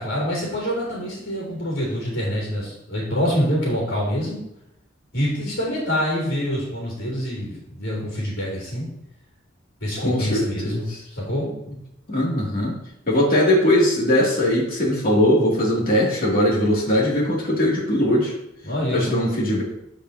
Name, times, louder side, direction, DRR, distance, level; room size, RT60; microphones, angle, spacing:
voice 1, 0.0-4.4 5.1-8.9 9.8-11.5 18.6-19.2, equal, 80° left, -6 dB, 3.2 m, -26 dB
voice 2, 10.0-11.0 12.1-12.8 13.1-18.3 18.9-19.6, left 1 dB, 50° left, -4 dB, 2.6 m, -20 dB
14.0 x 5.1 x 2.8 m, 0.82 s
head